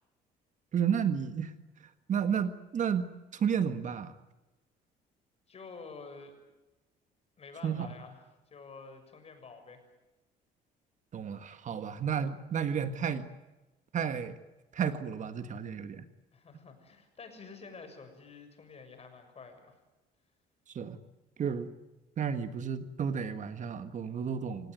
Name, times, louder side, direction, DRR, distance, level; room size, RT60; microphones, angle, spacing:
voice 1, 0.7-1.5 2.1-3.1 3.3-4.1 7.6-7.9 11.1-13.3 13.9-14.4 14.7-16.0 20.7-21.0 21.4-21.7 22.2-24.7, right 7 dB, 45° right, 10 dB, 1.7 m, -32 dB
voice 2, 5.5-6.4 7.4-8.2 8.5-9.9 16.3-19.8, left 4 dB, 35° left, 7 dB, 6.7 m, -49 dB
28.0 x 18.0 x 9.3 m, 1.1 s
cardioid pair, 110°, 17 cm